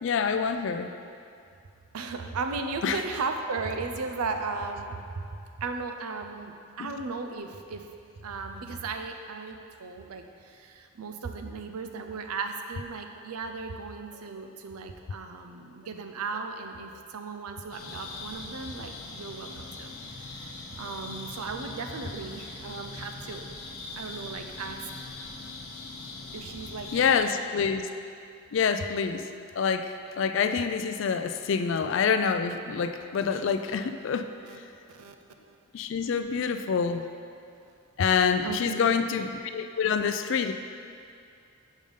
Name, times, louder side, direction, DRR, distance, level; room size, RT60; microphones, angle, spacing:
voice 1, 0.0-0.9 2.8-3.0 6.8-7.0 26.9-27.8 28.5-29.3 29.6-34.3 35.7-37.0 38.0-40.5, left 6 dB, 55° left, 9 dB, 0.3 m, -26 dB
voice 2, 1.9-5.0 5.6-7.9 8.2-19.9 20.2-23.4 24.0-24.8 26.3-27.5 34.4-34.6 34.9-35.1 35.5-35.6 38.4-38.9, right 4 dB, 85° right, 5 dB, 0.5 m, -36 dB
sound 1, 17.7-27.2, left 3 dB, 85° left, 0.8 m, -41 dB
5.3 x 5.0 x 5.5 m, 2.5 s
head